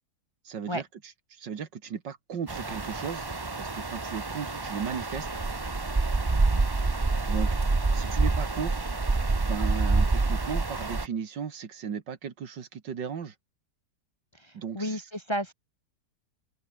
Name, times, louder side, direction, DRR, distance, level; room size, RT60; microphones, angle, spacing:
voice 1, 0.4-0.8 1.3-3.3 3.6-5.3 7.3-7.6 7.9-8.8 9.4-13.3 14.5-15.0, right 7 dB, 75° right, 2.4 m, -35 dB
sound 1, 2.5-11.1, right 3 dB, 25° right, 0.6 m, -27 dB
voice 2, 6.3-6.7 14.3-15.5, equal, 15° left, 1.6 m, -33 dB
open air
omnidirectional pair, 1.9 m